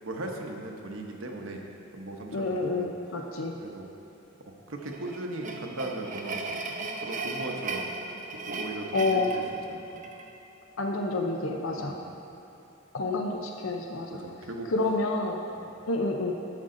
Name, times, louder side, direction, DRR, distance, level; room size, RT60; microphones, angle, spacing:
voice 1, 0.0-1.6 1.9-2.9 3.6-3.9 4.5-6.6 7.0-7.9 8.4-9.4 9.7-9.8 11.8-12.2 14.1-14.7 15.5-15.7, right 2 dB, 70° right, 2 dB, 1.0 m, -38 dB
voice 2, 2.3-3.6 8.9-9.3 10.8-12.0 12.9-14.2 14.7-15.4 15.9-16.3, left 2 dB, 75° left, 2 dB, 0.7 m, -28 dB
sound 1, 4.8-10.3, right 3 dB, 40° right, 0.6 m, -36 dB
11.0 x 7.6 x 3.8 m, 3.0 s
head